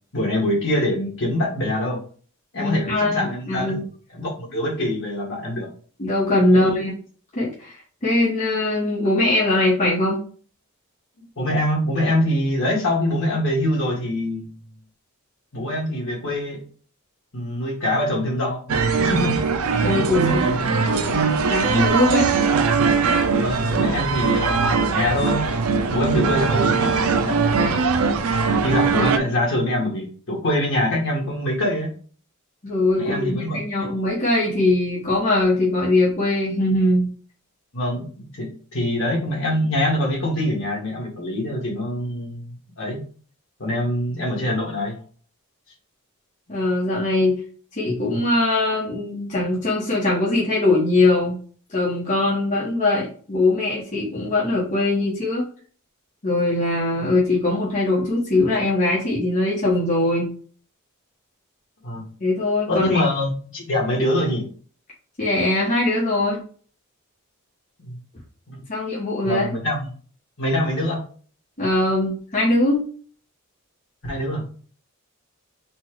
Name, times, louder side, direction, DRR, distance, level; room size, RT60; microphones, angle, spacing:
voice 1, 0.1-2.0 2.5-3.8 4.1-5.7 6.5-6.8 11.4-14.5 15.5-16.6 17.3-19.3 20.1-20.9 23.4-27.8 28.6-31.9 32.9-33.9 37.7-43.0 43.6-45.0 57.0-57.1 61.8-62.1 62.7-64.5 67.8-68.0 68.5-68.6 69.2-69.9 70.4-71.0 74.0-74.6, left 1 dB, 60° left, -3 dB, 1.8 m, -24 dB
voice 2, 2.6-3.9 6.0-6.9 7.3-10.2 19.8-20.4 20.8-22.3 32.6-37.1 46.5-47.4 47.7-51.4 51.7-55.5 56.2-60.3 62.2-63.0 65.2-66.4 68.7-69.5 71.6-72.8, left 2 dB, 35° left, -6 dB, 1.2 m, -21 dB
sound 1, 18.7-29.2, right 5 dB, 70° right, 0.5 m, -20 dB
4.4 x 2.4 x 4.6 m, 0.43 s
head